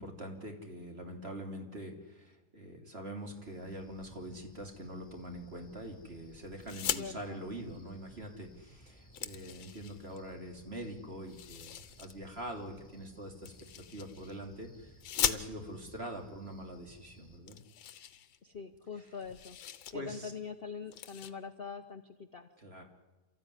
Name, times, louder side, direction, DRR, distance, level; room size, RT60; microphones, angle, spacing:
voice 1, 0.0-13.5 13.9-17.6 19.9-20.3 22.6-22.8, right 1 dB, 30° right, 3 dB, 3.3 m, -44 dB
Cricket, 3.2-17.4, equal, 5° left, 5.8 m, -59 dB
sound 1, 6.6-7.1 8.4-8.5 8.8-10.2 11.3-12.1 13.4-14.4 15.0-15.9 16.7-16.8 17.1-17.2 17.5-18.8 19.1-19.9 20.3-20.5 20.9-21.3, left 10 dB, 90° left, 1.7 m, -38 dB
voice 2, 7.0-7.4 18.4-19.6 19.9-22.5, left 5 dB, 40° left, 9 dB, 0.9 m, -43 dB
28.5 x 14.0 x 9.9 m, 1.1 s
omnidirectional pair, 2.0 m